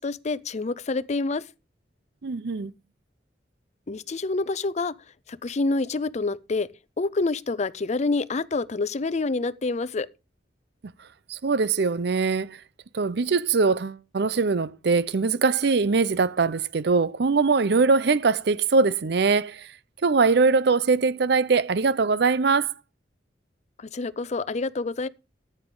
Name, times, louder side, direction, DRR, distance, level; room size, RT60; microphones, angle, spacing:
voice 1, 0.0-1.4 3.9-4.9 5.3-6.7 7.0-10.1 23.8-25.1, left 3 dB, 40° left, 0.5 m, -27 dB
voice 2, 2.2-2.7 11.3-12.6 12.9-19.7 20.0-22.7, right 4 dB, 65° right, 0.6 m, -22 dB
14.5 x 9.0 x 3.8 m
head